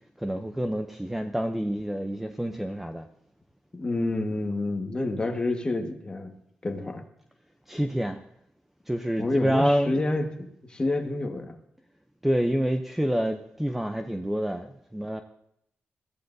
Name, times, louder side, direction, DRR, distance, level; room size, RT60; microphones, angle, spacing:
voice 1, 0.2-3.0 7.7-8.2 8.9-9.9 12.2-15.2, equal, 5° right, 6 dB, 0.6 m, -27 dB
voice 2, 3.7-6.3 6.6-7.0 9.2-11.5, left 2 dB, 25° left, 4 dB, 1.5 m, -29 dB
21.5 x 14.0 x 2.7 m, 0.75 s
wide cardioid pair, 155°, 4 cm